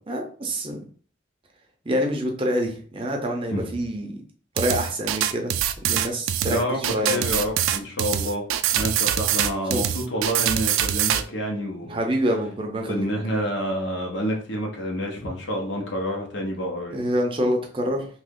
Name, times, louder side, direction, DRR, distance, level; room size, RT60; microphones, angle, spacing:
voice 1, 0.1-0.8 1.9-4.2 4.5-5.5 5.9-6.6 6.9-7.3 9.7-9.8 11.8-13.1 16.9-18.1, equal, 25° right, 3 dB, 0.5 m, -26 dB
sound 1, 4.6-11.2, right 10 dB, 90° right, 0.3 m, -24 dB
voice 2, 6.5-8.5 8.7-12.0 12.8-17.0, equal, 65° left, 1 dB, 0.9 m, -28 dB
2.9 x 2.5 x 3.6 m, 0.43 s
head